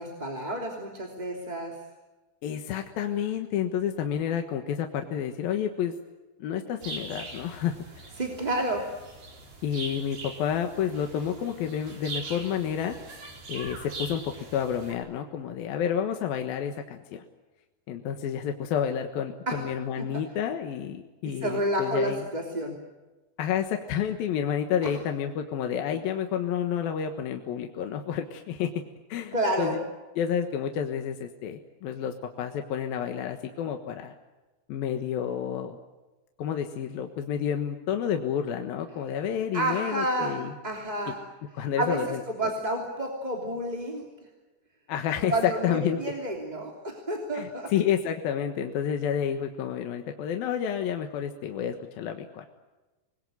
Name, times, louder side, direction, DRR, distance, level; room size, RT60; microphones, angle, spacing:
voice 1, 0.0-1.7 8.2-8.9 19.5-19.6 20.0-20.1 21.2-22.7 24.8-24.9 29.3-29.8 39.5-41.2 41.8-42.0 42.3-44.0 45.3-47.7, right 1 dB, 10° right, 1 dB, 2.5 m, -30 dB
voice 2, 2.4-5.9 6.4-8.1 9.6-13.0 13.5-17.2 17.9-22.2 23.4-28.8 29.1-29.8 30.2-34.1 34.7-35.8 36.4-40.6 41.5-42.2 44.9-46.0 47.3-52.4, left 8 dB, 65° left, 5 dB, 3.0 m, -30 dB
sound 1, 6.8-14.9, right 3 dB, 50° right, 6.1 m, -42 dB
27.0 x 21.0 x 9.4 m, 1.2 s
omnidirectional pair, 4.8 m